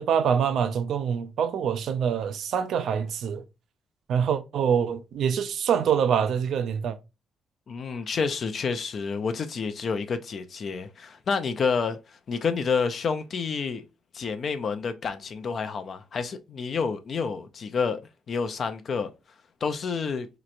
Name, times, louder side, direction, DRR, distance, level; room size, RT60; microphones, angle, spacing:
voice 1, 0.0-3.4 4.1-7.0, right 7 dB, 70° right, 0.4 m, -25 dB
voice 2, 7.7-13.8 14.1-18.0 18.3-19.1 19.6-20.3, left 5 dB, 50° left, 0.4 m, -29 dB
3.2 x 2.9 x 2.5 m
cardioid pair, 90°, 0 cm